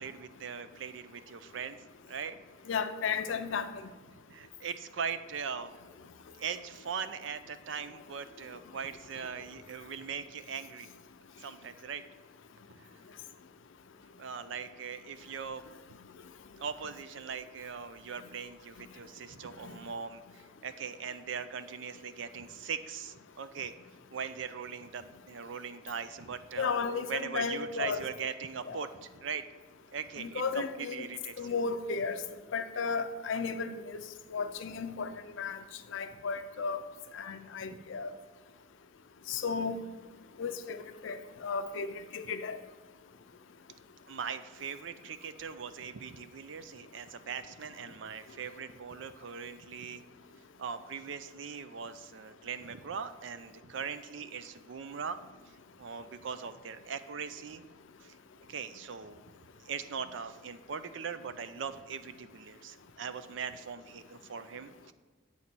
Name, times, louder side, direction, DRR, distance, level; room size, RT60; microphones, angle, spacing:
voice 1, 0.0-1.8 2.1-2.4 4.3-5.7 6.4-10.9 11.4-12.0 12.7-12.9 14.2-15.6 16.6-23.7 24.1-26.8 27.0-29.4 29.9-31.5 37.7-37.8 44.1-50.0 50.6-55.2 55.5-57.6 58.0-58.2 58.5-59.2 59.6-64.9, right 6 dB, 70° right, 0.5 m, -40 dB
voice 2, 2.7-3.7 26.6-28.0 28.7-28.9 30.2-31.1 31.4-32.2 32.5-34.0 34.3-35.6 35.9-36.8 37.1-38.1 39.3-39.8 40.4-40.8 41.0-41.9 42.1-42.6, left 5 dB, 80° left, 0.5 m, -34 dB
8.6 x 4.1 x 6.0 m
head